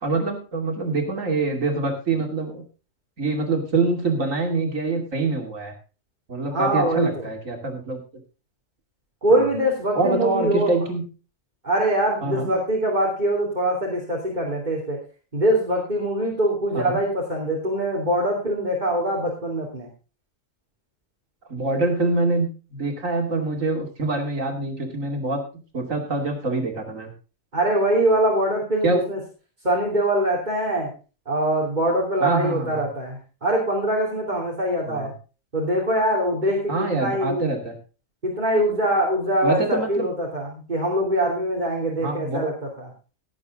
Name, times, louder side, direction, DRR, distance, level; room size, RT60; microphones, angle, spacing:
voice 1, 0.0-2.6 3.2-5.7 6.3-8.0 9.3-9.5 9.9-11.0 12.2-12.5 16.7-17.0 21.5-25.4 25.7-27.1 28.8-29.0 32.2-32.8 34.9-35.1 36.7-37.7 39.4-40.1 42.0-42.5, right 3 dB, 90° right, 3 dB, 3.1 m, -25 dB
voice 2, 6.5-7.2 9.2-10.7 11.6-15.0 15.3-19.9 27.5-29.2 29.6-30.9 31.3-35.1 35.5-37.5 38.2-42.9, right 1 dB, 35° right, -2 dB, 3.3 m, -23 dB
17.5 x 8.5 x 3.7 m, 0.34 s
omnidirectional pair, 1.3 m